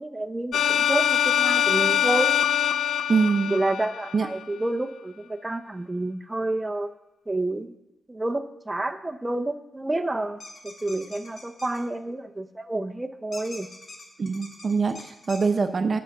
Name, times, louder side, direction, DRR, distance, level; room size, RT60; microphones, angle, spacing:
voice 1, 0.0-2.3 3.5-6.9 7.3-7.7 8.1-13.7, right 2 dB, 15° right, 6 dB, 0.8 m, -29 dB
sound 1, 0.5-4.4, left 9 dB, 85° left, 0.3 m, -23 dB
voice 2, 3.1-3.5 4.1-4.3 14.2-16.0, right 4 dB, 50° right, 8 dB, 0.7 m, -24 dB
sound 2, 10.4-11.8 13.3-15.5, left 2 dB, 50° left, 1.8 m, -43 dB
10.0 x 6.5 x 6.6 m, 0.93 s
cardioid pair, 75°, 0 cm